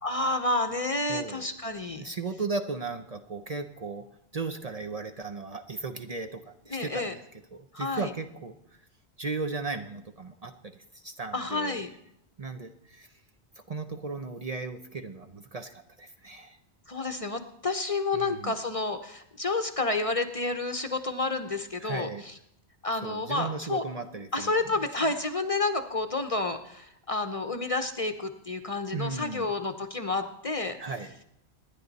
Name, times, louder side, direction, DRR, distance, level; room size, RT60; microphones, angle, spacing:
voice 1, 0.0-2.0 6.7-7.1 7.7-8.1 11.3-11.9 16.9-22.4 22.8-23.8 24.3-30.8, left 2 dB, 35° left, 8 dB, 0.8 m, -30 dB
voice 2, 1.1-1.4 2.0-4.0 4.3-7.2 7.5-8.5 9.2-11.8 12.4-13.1 13.7-16.6 18.1-18.5 21.8-22.2 23.0-24.5 25.0-25.1 28.9-29.5 30.8-31.2, right 4 dB, 40° right, 6 dB, 0.8 m, -36 dB
26.0 x 10.0 x 4.1 m, 0.77 s
omnidirectional pair, 1.1 m